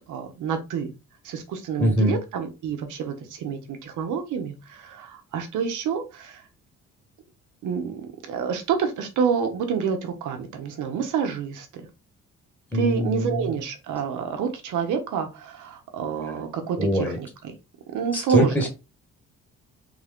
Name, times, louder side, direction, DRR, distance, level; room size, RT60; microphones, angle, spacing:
voice 1, 0.1-0.9 1.2-6.4 7.6-11.8 12.7-17.5 17.9-18.5, right 6 dB, 80° right, 6 dB, 1.0 m, -28 dB
voice 2, 1.8-2.2 12.7-13.5 16.8-17.2 18.1-18.7, equal, 5° left, 1 dB, 1.1 m, -23 dB
3.6 x 2.5 x 3.5 m, 0.28 s
cardioid pair, 90°, 30 cm